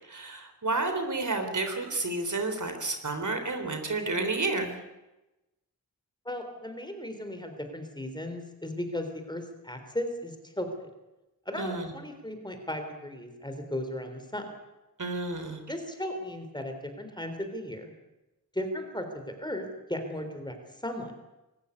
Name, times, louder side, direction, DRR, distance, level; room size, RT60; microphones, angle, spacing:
voice 1, 0.1-4.8 11.6-11.9 15.0-15.6, right 3 dB, 55° right, 6 dB, 3.7 m, -30 dB
voice 2, 6.3-10.9 11.5-14.5 15.7-17.9 18.5-21.1, left 1 dB, 10° left, 6 dB, 3.7 m, -36 dB
24.5 x 14.5 x 9.7 m, 1.0 s
wide cardioid pair, 100°, 36 cm